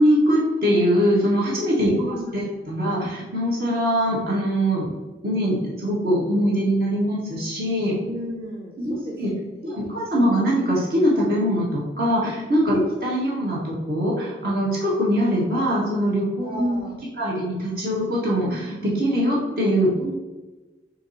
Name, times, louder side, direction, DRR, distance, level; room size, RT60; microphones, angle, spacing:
voice 1, 0.0-1.9 2.3-4.9 5.2-7.9 8.8-9.3 9.6-16.8 17.2-19.9, equal, 55° right, -5 dB, 1.9 m, -22 dB
voice 2, 1.8-2.5 8.0-9.2 9.5-10.0 12.7-12.9 16.4-16.9 20.0-20.1, right 1 dB, 30° right, -3 dB, 0.9 m, -35 dB
7.5 x 3.0 x 4.3 m, 1.2 s
head